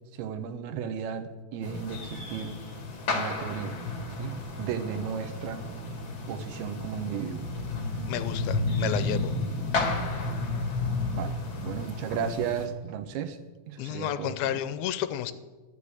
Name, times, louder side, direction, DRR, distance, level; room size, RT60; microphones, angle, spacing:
voice 1, 0.2-2.6 3.1-3.8 4.2-5.7 6.3-7.5 11.1-11.4 11.6-13.4 13.7-14.6, right 8 dB, 85° right, 9 dB, 2.8 m, -34 dB
sound 1, 1.6-12.7, left 2 dB, 40° left, 2.1 m, -32 dB
voice 2, 8.1-9.4 13.8-15.3, left 12 dB, 85° left, 12 dB, 2.5 m, -31 dB
12.0 x 6.8 x 8.2 m, 1.3 s
omnidirectional pair, 4.3 m